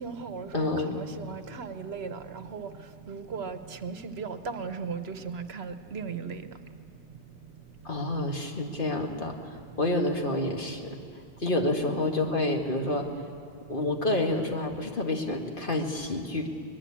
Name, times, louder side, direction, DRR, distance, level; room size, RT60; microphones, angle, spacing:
voice 1, 0.0-2.7 3.1-6.4 11.8-12.0, right 5 dB, 65° right, 10 dB, 1.2 m, -37 dB
voice 2, 0.5-1.0 7.8-11.0 11.4-13.1 13.7-16.5, left 2 dB, 50° left, 3 dB, 2.0 m, -28 dB
21.5 x 20.5 x 8.6 m, 2.3 s
omnidirectional pair, 1.1 m